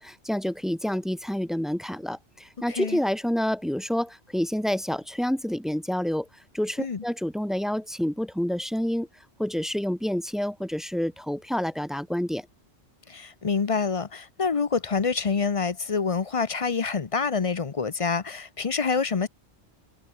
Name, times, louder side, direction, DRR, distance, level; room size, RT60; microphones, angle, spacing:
voice 1, 0.0-6.3 6.5-9.1 9.4-12.5, equal, ahead, 1.0 m, -28 dB
voice 2, 2.7-3.0 6.8-7.0 13.1-19.3, left 5 dB, 35° left, 0.6 m, -27 dB
omnidirectional pair, 1.2 m